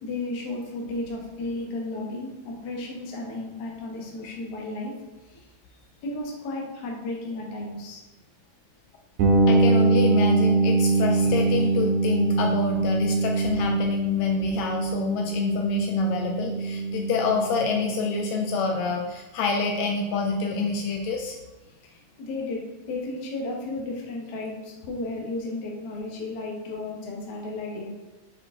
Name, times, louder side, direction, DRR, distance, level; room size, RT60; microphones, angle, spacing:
voice 1, 0.0-4.9 6.0-8.0 21.9-27.9, left 2 dB, 55° left, -1 dB, 1.2 m, -33 dB
sound 1, 9.2-18.9, right 3 dB, 90° right, 2.5 m, -23 dB
voice 2, 9.5-21.4, left 4 dB, 75° left, 2 dB, 1.7 m, -27 dB
6.3 x 4.6 x 3.7 m, 1.1 s
omnidirectional pair, 3.4 m